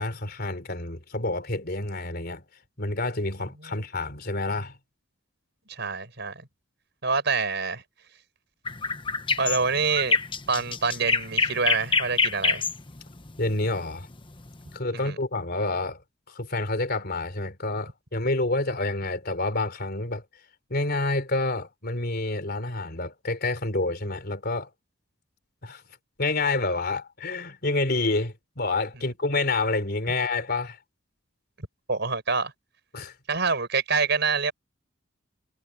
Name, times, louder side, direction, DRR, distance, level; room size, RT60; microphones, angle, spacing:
voice 1, 0.0-2.4 2.8-4.8 13.4-14.1 14.7-16.0 16.3-20.2 20.7-24.7 25.6-25.8 26.2-30.8 32.9-33.1, left 2 dB, 50° left, 3.7 m, -28 dB
voice 2, 5.7-6.4 7.0-7.8 9.4-10.2 10.5-12.6 15.0-15.2 31.6-32.5 33.3-34.5, right 4 dB, 60° right, 6.2 m, -26 dB
sound 1, 8.7-14.7, left 4 dB, 25° left, 1.2 m, -26 dB
head